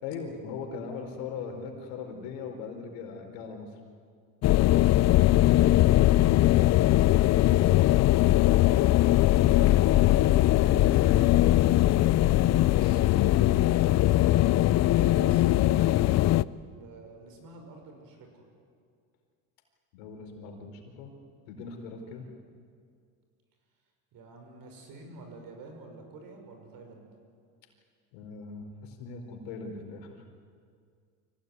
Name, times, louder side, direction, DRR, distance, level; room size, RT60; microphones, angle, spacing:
voice 1, 0.0-3.7 9.2-9.7 10.5-11.4 19.9-21.1 21.5-22.2 28.1-30.2, left 5 dB, 80° left, 3 dB, 4.6 m, -39 dB
sound 1, 4.4-16.4, left 15 dB, 40° left, 0.5 m, -21 dB
voice 2, 5.1-5.5 7.1-8.9 10.0-10.1 11.2-11.5 12.1-14.3 14.9-16.0 16.5-18.5 22.0-22.3 24.1-27.1, right 3 dB, 55° right, 4 dB, 6.3 m, -48 dB
24.5 x 17.5 x 9.6 m, 2.2 s
supercardioid pair, 105°, 41 cm